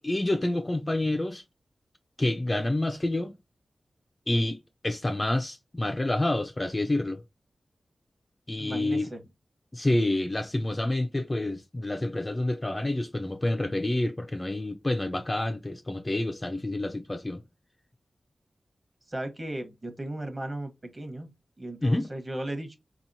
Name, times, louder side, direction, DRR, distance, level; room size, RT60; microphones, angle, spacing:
voice 1, 0.0-1.4 2.2-3.3 4.3-4.6 4.8-7.2 8.5-9.1 9.7-17.4 21.8-22.1, left 1 dB, 20° left, 0.4 m, -28 dB
voice 2, 8.6-9.2 19.1-21.3 21.6-22.8, right 1 dB, 25° right, 1.0 m, -36 dB
4.0 x 2.8 x 2.6 m
wide cardioid pair, 115°, 0 cm